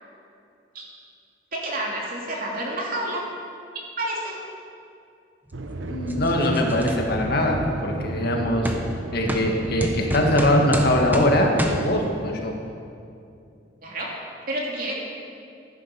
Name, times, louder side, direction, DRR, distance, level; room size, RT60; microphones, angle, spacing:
voice 1, 1.5-3.2 4.0-4.4 13.8-14.1 14.5-14.9, right 1 dB, 50° right, -2 dB, 2.9 m, -29 dB
sound 1, 5.5-12.1, right 2 dB, 85° right, 1.0 m, -33 dB
voice 2, 5.9-8.7 9.1-12.5, left 1 dB, 60° left, 1 dB, 1.8 m, -22 dB
sound 2, 6.1-7.0 7.6-7.8 8.7-8.8 9.3-9.5 9.8-11.3 11.6-11.8, equal, 10° right, 1.1 m, -28 dB
15.0 x 10.5 x 5.9 m, 2.5 s
head